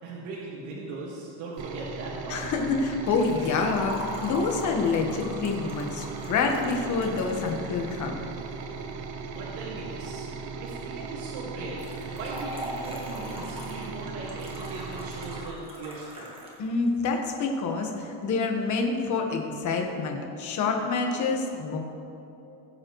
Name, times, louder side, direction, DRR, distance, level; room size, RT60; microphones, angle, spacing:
voice 1, 0.0-2.4 9.3-10.3 10.6-11.8 12.1-16.3, right 2 dB, 85° right, -5 dB, 2.0 m, -39 dB
sound 1, 1.6-15.5, right 4 dB, 40° right, 0.6 m, -38 dB
voice 2, 2.3-8.3 16.6-21.8, left 4 dB, 35° left, 3 dB, 1.4 m, -27 dB
Liquid, 3.1-8.0 11.8-16.6 16.9-17.0 17.9-18.0, right 1 dB, 10° right, 1.4 m, -41 dB
19.5 x 7.6 x 3.1 m, 2.8 s
cardioid pair, 170°, 48 cm